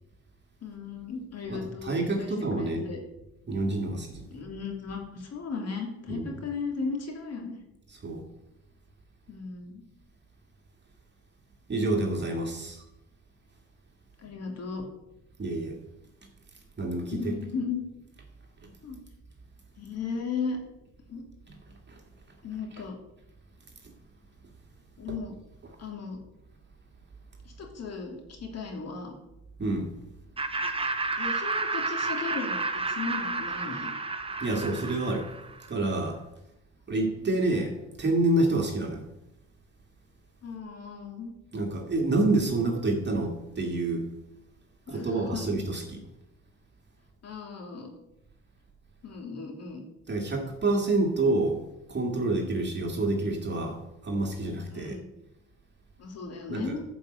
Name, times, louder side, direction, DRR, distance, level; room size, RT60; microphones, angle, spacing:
voice 1, 0.6-3.0 4.3-7.6 9.3-9.8 14.2-14.8 17.1-17.8 18.8-19.0 19.8-20.6 21.1-21.3 22.4-23.0 25.0-25.3 25.8-26.2 27.4-29.1 31.2-33.9 37.1-37.2 40.4-41.3 44.9-45.5 47.2-47.9 49.0-49.8 54.7-55.1 56.0-56.8, left 5 dB, 55° left, 1 dB, 2.7 m, -36 dB
voice 2, 1.5-2.8 3.5-4.2 6.1-6.3 8.0-8.3 11.7-12.8 15.4-15.8 16.8-17.3 18.6-18.7 21.9-22.0 29.6-29.9 34.4-35.3 35.7-36.2 36.9-39.0 41.5-44.0 44.9-46.0 50.1-51.6 51.9-55.0 56.5-56.8, right 2 dB, 35° right, 2 dB, 2.0 m, -28 dB
Laughter, 30.4-35.7, right 3 dB, 20° right, 0.9 m, -31 dB
10.5 x 5.2 x 7.8 m, 0.91 s
cardioid pair, 90°, 30 cm